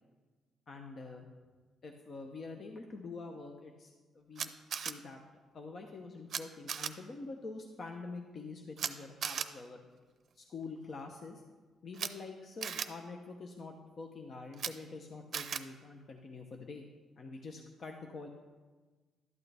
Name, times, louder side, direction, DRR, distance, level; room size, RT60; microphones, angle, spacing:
voice 1, 0.7-1.3 1.8-5.2 5.5-9.8 10.3-11.4 11.8-16.9 17.2-18.3, left 3 dB, 50° left, 3 dB, 0.9 m, -46 dB
Camera, 4.4-4.9 6.3-6.4 6.7-6.9 8.8-8.9 9.2-9.5 11.9-12.1 12.6-12.9 14.5-14.7 15.3-15.6, right 7 dB, 60° right, 0.5 m, -36 dB
12.0 x 8.4 x 3.4 m, 1.3 s
cardioid pair, 90°, 0 cm